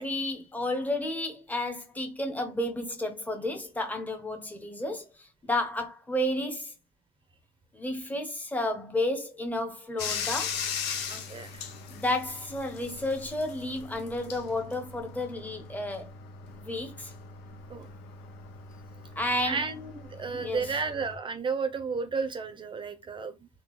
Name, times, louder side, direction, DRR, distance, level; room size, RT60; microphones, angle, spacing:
voice 1, 0.0-6.7 7.7-10.6 11.9-16.1 16.5-17.1 19.2-19.6 20.3-20.7, left 1 dB, 10° left, 0.8 m, -32 dB
Bathtub (filling or washing), 10.0-21.2, left 6 dB, 90° left, 0.7 m, -39 dB
voice 2, 11.1-11.7 17.7-17.9 19.4-23.5, right 5 dB, 30° right, 0.6 m, -33 dB
3.7 x 2.3 x 2.9 m
cardioid pair, 110°, 17 cm